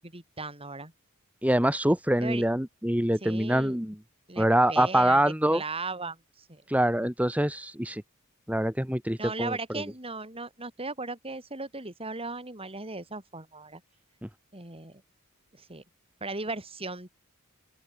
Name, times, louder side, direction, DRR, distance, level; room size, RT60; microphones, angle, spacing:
voice 1, 0.0-0.9 2.2-2.4 3.2-3.8 4.3-6.6 9.2-13.8 14.5-15.0 15.5-15.8 16.2-17.1, right 3 dB, 25° right, 7.6 m, -37 dB
voice 2, 1.4-4.0 4.4-5.6 6.7-8.0 8.5-9.6 14.2-14.3, right 1 dB, 5° right, 2.3 m, -25 dB
open air
head